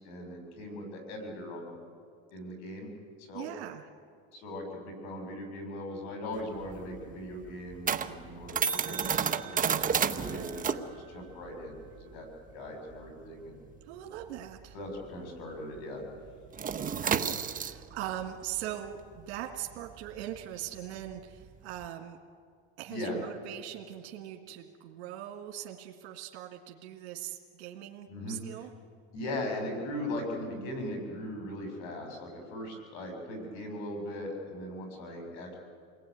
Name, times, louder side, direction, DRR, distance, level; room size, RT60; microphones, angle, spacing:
voice 1, 0.0-1.7 2.3-2.9 3.2-3.5 4.3-12.3 12.5-13.6 14.7-16.0 22.9-23.2 28.1-28.4 29.1-35.6, left 1 dB, 80° left, 4 dB, 6.8 m, -39 dB
voice 2, 3.3-3.8 13.9-14.7 17.0-22.2 22.8-28.7, right 12 dB, 85° right, 2 dB, 2.0 m, -41 dB
sound 1, 6.3-15.3 15.6-15.8 16.1-21.9, right 7 dB, 25° right, 1.2 m, -32 dB
28.5 x 19.5 x 9.5 m, 2.1 s
supercardioid pair, 115°, 32 cm